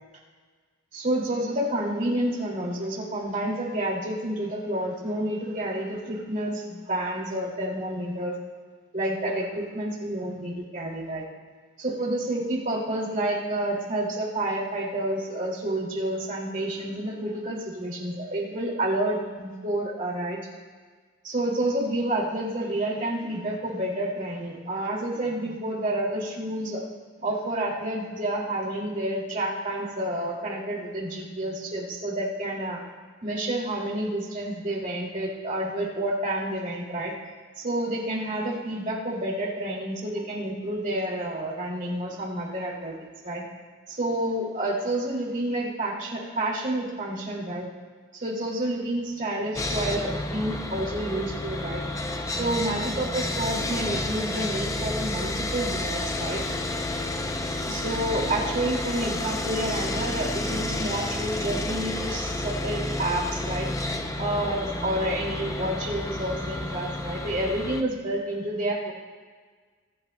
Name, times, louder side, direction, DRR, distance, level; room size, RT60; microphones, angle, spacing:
voice 1, 0.9-8.3 8.9-11.2 11.8-20.4 21.2-26.8 27.2-32.8 33.2-37.1 37.6-42.9 43.2-43.4 43.9-47.7 48.1-51.8 52.3-56.4 57.7-63.7 64.2-68.9, right 1 dB, 40° right, -3 dB, 2.4 m, -29 dB
Sawing, 49.5-67.8, left 2 dB, 15° left, 0.5 m, -30 dB
23.0 x 10.0 x 2.2 m, 1.5 s
head